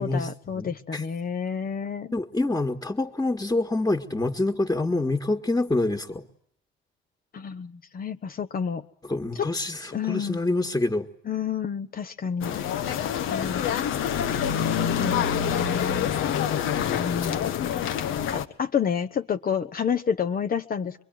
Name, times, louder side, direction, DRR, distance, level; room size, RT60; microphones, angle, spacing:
voice 1, 0.0-2.1 7.3-8.8 9.4-9.5 9.9-10.4 11.3-12.6 13.3-13.7 15.0-16.1 16.9-17.5 18.3-21.0, left 7 dB, 45° left, 8 dB, 1.1 m, -29 dB
voice 2, 0.5-1.0 2.1-6.2 9.0-11.1, left 2 dB, 15° left, 4 dB, 2.1 m, -26 dB
sound 1, 12.4-18.5, left 9 dB, 85° left, 1.7 m, -26 dB
25.5 x 23.0 x 9.4 m, 0.68 s
cardioid pair, 90°, 20 cm